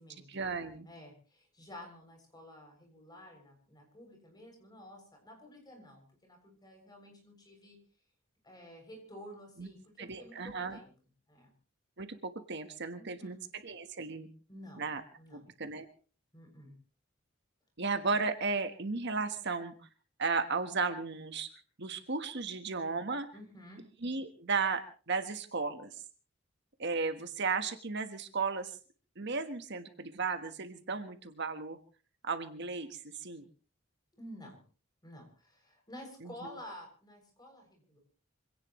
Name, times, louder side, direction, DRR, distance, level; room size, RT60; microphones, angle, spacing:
voice 1, 0.3-0.9 9.6-9.7 10.0-10.8 12.0-14.3 14.8-15.0 15.3-15.9 17.8-19.7 20.2-21.5 21.8-23.3 24.0-25.9 26.8-28.8 29.2-31.8 32.2-33.5 36.2-36.3, right 4 dB, 60° right, 8 dB, 1.4 m, -35 dB
voice 2, 0.9-7.8 8.4-10.9 11.3-11.5 13.0-13.4 14.5-14.9 15.2-15.5 16.3-16.7 23.3-23.8 34.2-34.6 35.0-38.0, equal, 20° left, 2 dB, 7.3 m, -51 dB
26.0 x 17.5 x 3.2 m, 0.37 s
head